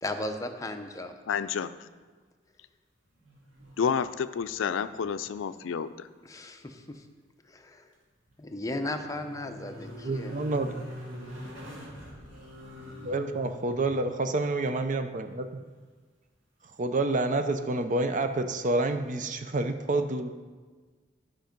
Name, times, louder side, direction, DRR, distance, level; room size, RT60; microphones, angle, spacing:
voice 1, 0.0-1.1 6.2-7.1 7.4-7.9 8.4-10.6, left 2 dB, 20° left, 5 dB, 0.6 m, -36 dB
voice 2, 1.3-1.9 3.8-6.1, left 6 dB, 85° left, 13 dB, 0.4 m, -30 dB
sound 1, 3.2-4.2 4.4-5.3 5.5-5.6 8.1-14.0 16.8-16.9, equal, 85° right, 2.1 m, -44 dB
voice 3, 10.0-10.9 13.0-15.5 16.8-20.3, right 2 dB, 40° right, 8 dB, 0.6 m, -28 dB
12.0 x 5.2 x 5.2 m, 1.4 s
head